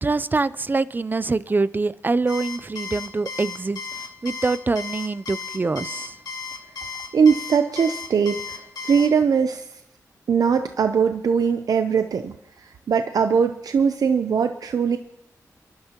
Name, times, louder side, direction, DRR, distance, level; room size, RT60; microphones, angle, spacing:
voice 1, 0.0-3.8 4.2-6.2, right 3 dB, 30° right, 16 dB, 0.5 m, -24 dB
Alarm, 2.3-9.1, left 5 dB, 85° left, 1.7 m, -34 dB
voice 2, 6.9-9.7 10.3-12.4 12.6-15.0, right 6 dB, 75° right, 8 dB, 0.6 m, -21 dB
28.5 x 11.5 x 2.9 m, 0.82 s
wide cardioid pair, 85°, 6 cm